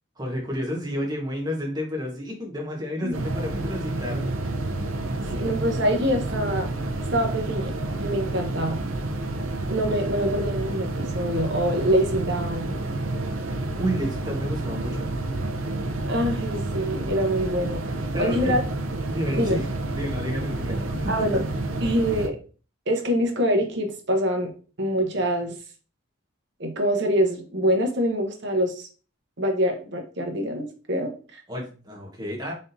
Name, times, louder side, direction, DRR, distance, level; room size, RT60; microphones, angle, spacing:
voice 1, 0.2-4.3 13.8-15.1 18.1-18.6 19.1-21.4 31.5-32.5, equal, 20° right, -2 dB, 1.3 m, -30 dB
sound 1, 3.1-22.3, right 2 dB, 85° right, 0.6 m, -29 dB
voice 2, 5.3-6.7 7.1-8.8 9.7-12.8 16.0-17.8 18.2-18.6 19.3-19.6 21.1-21.4 21.8-22.4 22.9-24.5 24.8-25.6 26.6-28.9 29.4-31.4, equal, 55° right, 3 dB, 1.0 m, -25 dB
4.1 x 3.5 x 2.7 m, 0.38 s
head